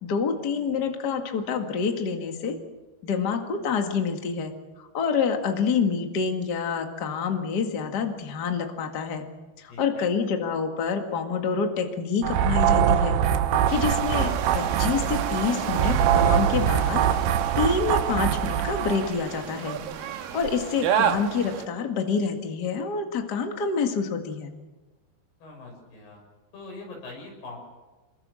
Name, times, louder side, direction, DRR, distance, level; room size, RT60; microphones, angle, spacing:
voice 1, 0.0-2.5 3.0-4.5 4.8-9.2 9.6-13.2 13.7-17.0 17.5-19.8 20.3-24.5, left 5 dB, 45° left, 4 dB, 1.3 m, -27 dB
voice 2, 9.7-10.1 25.4-26.2 26.5-27.6, left 3 dB, 65° left, 1 dB, 8.1 m, -42 dB
sound 1, 12.2-19.1, right 9 dB, 80° right, 3.3 m, -23 dB
sound 2, 13.7-21.7, right 8 dB, 65° right, 2.7 m, -31 dB
26.5 x 22.0 x 6.4 m, 1.2 s
omnidirectional pair, 5.0 m